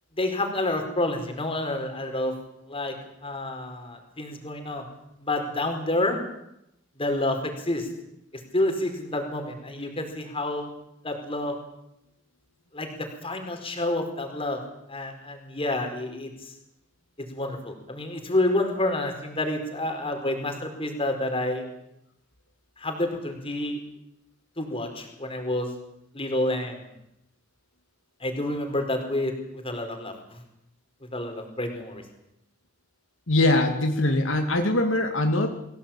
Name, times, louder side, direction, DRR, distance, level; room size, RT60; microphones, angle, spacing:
voice 1, 0.2-2.3 2.7-2.9 3.2-4.8 5.2-6.2 7.0-7.9 8.5-10.7 11.0-11.5 12.7-14.6 14.9-16.5 17.3-21.7 22.8-23.8 24.6-25.7 26.1-26.8 28.2-30.4 31.1-32.0, left 1 dB, 30° left, 5 dB, 4.7 m, -29 dB
voice 2, 33.3-35.5, left 2 dB, 70° left, 4 dB, 2.4 m, -22 dB
24.0 x 17.0 x 8.8 m, 0.83 s
head